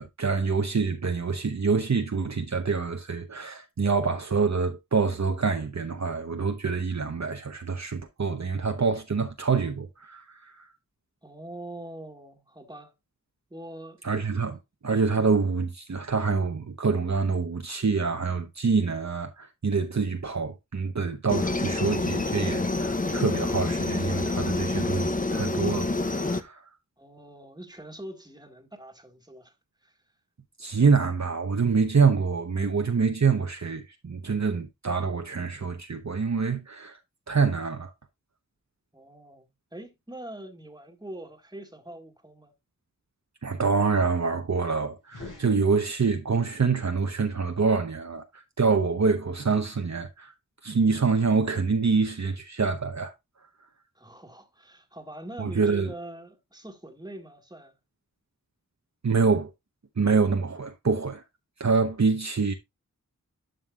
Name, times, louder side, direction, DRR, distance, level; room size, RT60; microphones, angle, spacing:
voice 1, 0.0-10.7 14.0-26.6 30.6-37.0 37.3-37.9 43.4-50.3 50.6-53.1 55.4-55.9 59.0-59.5 60.0-61.2 61.6-62.5, right 4 dB, 55° right, 0.9 m, -26 dB
voice 2, 11.2-12.9 13.5-14.0 27.0-29.5 29.8-30.0 38.9-42.5 54.0-57.8, right 1 dB, 10° right, 1.7 m, -43 dB
Aircraft, 21.3-26.4, left 3 dB, 25° left, 0.7 m, -27 dB
sound 1, 45.0-46.3, left 3 dB, 70° left, 5.4 m, -46 dB
11.0 x 5.3 x 2.3 m
wide cardioid pair, 45°, 33 cm